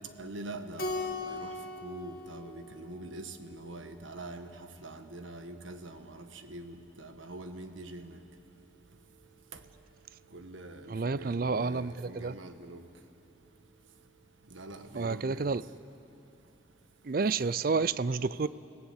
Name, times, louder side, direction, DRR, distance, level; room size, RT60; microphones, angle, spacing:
voice 1, 0.2-1.5 1.8-4.5 4.8-8.1 10.3-12.8 14.5-15.5, right 2 dB, 90° right, 7 dB, 1.5 m, -44 dB
Keyboard (musical), 0.8-3.4, left 2 dB, 50° left, 2.0 m, -38 dB
voice 2, 10.9-12.3 14.9-15.6 17.0-18.5, right 4 dB, 50° right, 17 dB, 0.4 m, -30 dB
30.0 x 17.0 x 8.1 m, 2.9 s
head